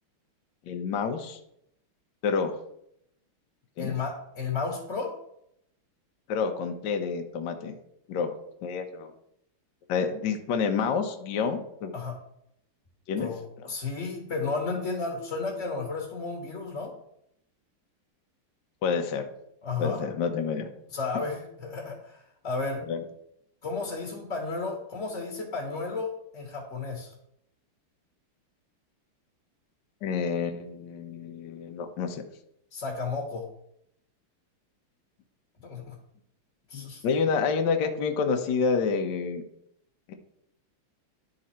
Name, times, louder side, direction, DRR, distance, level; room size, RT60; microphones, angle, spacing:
voice 1, 0.7-1.4 2.2-2.5 3.8-3.9 6.3-7.7 8.1-8.3 8.6-9.1 9.9-11.9 13.1-13.3 13.6-13.7 18.8-19.3 19.8-20.7 22.9-23.0 30.0-32.2 36.7-39.4 40.1-40.2, left 5 dB, 65° left, 6 dB, 1.3 m, -28 dB
voice 2, 3.8-5.1 11.9-12.2 13.2-16.9 19.6-20.0 20.9-22.8 23.6-27.1 32.7-33.4 35.6-35.9 36.7-37.0, left 4 dB, 40° left, 0 dB, 1.5 m, -33 dB
11.5 x 3.9 x 4.3 m, 0.76 s
omnidirectional pair, 2.4 m